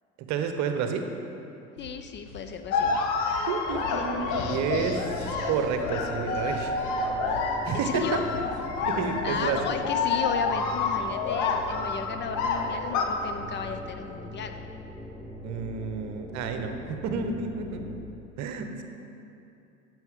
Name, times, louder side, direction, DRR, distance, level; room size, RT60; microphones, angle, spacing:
voice 1, 0.3-1.0 3.5-6.8 7.6-8.2 8.8-9.6 15.4-17.8 18.4-18.8, right 6 dB, 45° right, 6 dB, 1.0 m, -30 dB
sound 1, 1.8-9.8, left 2 dB, 85° left, 1.1 m, -47 dB
voice 2, 1.8-3.0 7.7-8.2 9.2-14.5, left 6 dB, 30° left, 6 dB, 0.5 m, -34 dB
sound 2, 2.7-13.1, left 4 dB, 45° left, 1.2 m, -29 dB
sound 3, 3.6-18.0, left 1 dB, 5° right, 1.1 m, -41 dB
13.5 x 7.7 x 3.8 m, 2.7 s
figure-of-eight pair, 70°, 40 cm